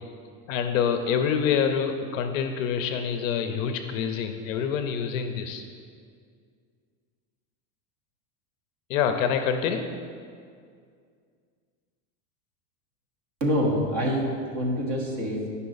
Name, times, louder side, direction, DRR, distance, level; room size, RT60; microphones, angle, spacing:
voice 1, 0.5-5.6 8.9-9.9, left 7 dB, 55° left, 7 dB, 0.6 m, -26 dB
voice 2, 13.4-15.5, equal, 35° right, -1 dB, 1.3 m, -26 dB
9.4 x 5.6 x 3.9 m, 2.2 s
supercardioid pair, 170°, 49 cm